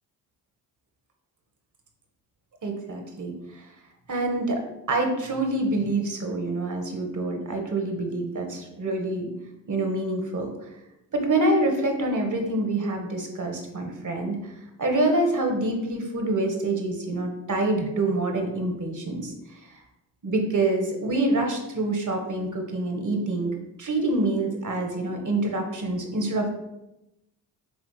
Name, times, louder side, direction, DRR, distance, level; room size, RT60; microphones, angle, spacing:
voice 1, 2.6-3.7 4.1-4.6 4.9-9.3 9.7-10.7 11.1-14.5 14.8-19.3 20.2-26.5, right 2 dB, 40° right, 3 dB, 1.7 m, -26 dB
8.8 x 3.6 x 3.4 m, 0.90 s
hypercardioid pair, 50°, 45 cm